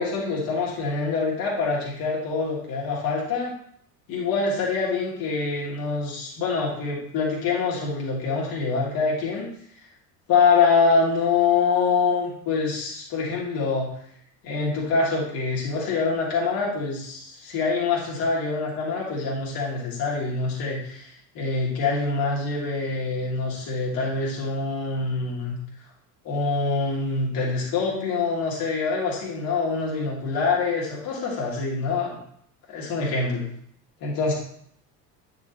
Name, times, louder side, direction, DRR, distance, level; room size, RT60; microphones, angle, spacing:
voice 1, 0.0-3.5 4.1-9.5 10.3-13.9 14.4-25.6 26.2-32.2 32.7-33.5 34.0-34.3, left 4 dB, 45° left, -4 dB, 2.5 m, -25 dB
9.5 x 5.0 x 3.0 m, 0.65 s
figure-of-eight pair, 65°, 48 cm